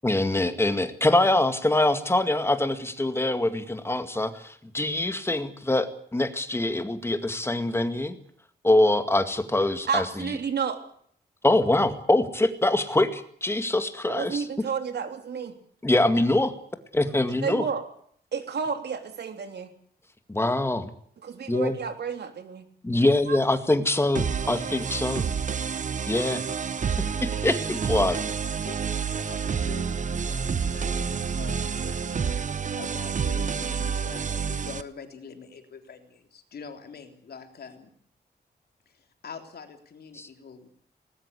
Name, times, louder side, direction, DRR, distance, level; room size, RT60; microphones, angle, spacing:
voice 1, 0.0-8.2 8.6-10.4 11.4-14.5 15.8-16.5 17.0-17.7 20.3-20.9 21.5-21.8 22.8-25.3 26.1-26.4 27.0-28.2 40.2-40.3, left 2 dB, 15° left, 9 dB, 2.1 m, -24 dB
voice 2, 9.9-10.8 14.1-15.5 17.4-17.8 18.3-19.7 21.2-22.6 23.3-23.4, right 6 dB, 80° right, 7 dB, 3.3 m, -30 dB
sound 1, 24.1-34.8, right 6 dB, 45° right, 1.0 m, -29 dB
voice 3, 27.7-28.2 28.4-37.9 38.9-40.7, left 5 dB, 70° left, 6 dB, 3.7 m, -45 dB
20.0 x 19.5 x 8.3 m, 0.62 s
wide cardioid pair, 145°, 17 cm